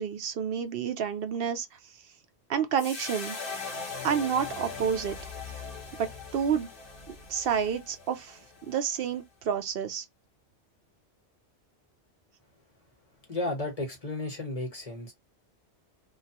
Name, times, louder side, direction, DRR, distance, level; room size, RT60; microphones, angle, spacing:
voice 1, 0.0-1.7 2.5-3.4 4.0-5.2 6.0-6.7 7.3-10.0, right 7 dB, 65° right, 0.7 m, -29 dB
sound 1, 2.8-9.2, left 4 dB, 55° left, 1.2 m, -40 dB
voice 2, 13.2-15.1, left 2 dB, 35° left, 1.1 m, -33 dB
2.9 x 2.1 x 2.8 m
omnidirectional pair, 1.2 m